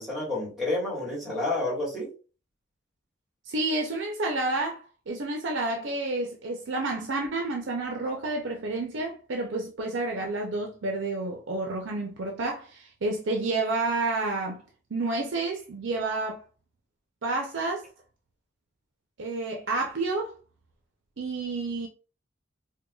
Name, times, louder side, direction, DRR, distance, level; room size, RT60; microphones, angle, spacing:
voice 1, 0.0-2.1, left 2 dB, ahead, 1.5 m, -29 dB
voice 2, 3.5-14.6 14.9-16.4 17.2-17.9 19.2-20.3 21.2-21.9, right 2 dB, 85° right, 0.6 m, -30 dB
4.5 x 2.2 x 2.3 m
head